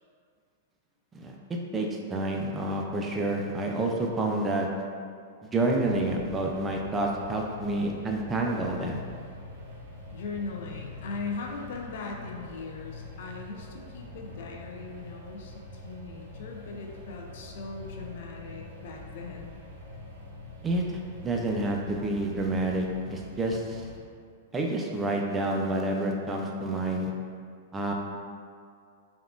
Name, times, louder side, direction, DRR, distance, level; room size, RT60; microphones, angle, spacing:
voice 1, 1.7-4.7 5.4-9.0 20.6-23.8 24.5-27.1 27.7-27.9, right 2 dB, 15° right, 0 dB, 0.3 m, -29 dB
sound 1, 5.8-24.0, left 2 dB, 70° right, 0.6 m, -45 dB
voice 2, 10.1-19.5, left 4 dB, 65° left, 1 dB, 0.4 m, -39 dB
3.5 x 2.3 x 2.4 m, 2.2 s
hypercardioid pair, 125°, 0 cm